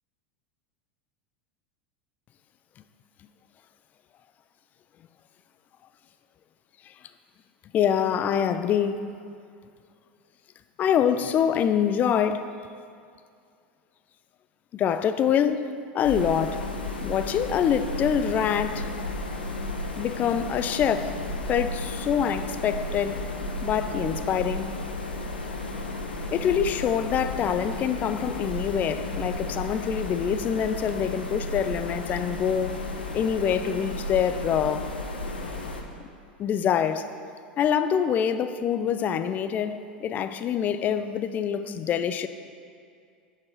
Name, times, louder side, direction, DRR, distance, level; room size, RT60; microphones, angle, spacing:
voice 1, 7.7-9.0 10.8-12.5 14.7-15.7 15.9-16.7 17.0-18.9 20.0-21.2 21.5-23.2 23.6-24.8 26.3-32.8 33.1-34.9 36.4-37.1 37.6-42.3, left 8 dB, 30° left, 11 dB, 0.4 m, -25 dB
sound 1, 16.0-35.8, left 2 dB, 75° left, 0.7 m, -33 dB
8.4 x 4.7 x 4.6 m, 2.3 s
figure-of-eight pair, 85°, 5 cm